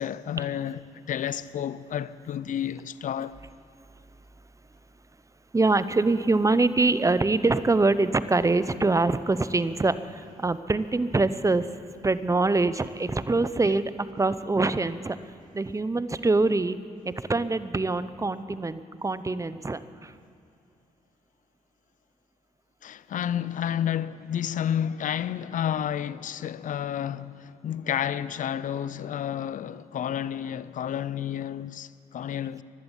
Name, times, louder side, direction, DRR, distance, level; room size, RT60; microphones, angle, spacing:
voice 1, 0.0-3.4 22.8-32.6, left 9 dB, 60° left, 0.5 m, -31 dB
voice 2, 5.5-11.7 12.0-15.2 15.5-16.8 17.0-20.1, right 3 dB, 20° right, 0.7 m, -24 dB
16.5 x 12.0 x 7.3 m
supercardioid pair, 55°, 15 cm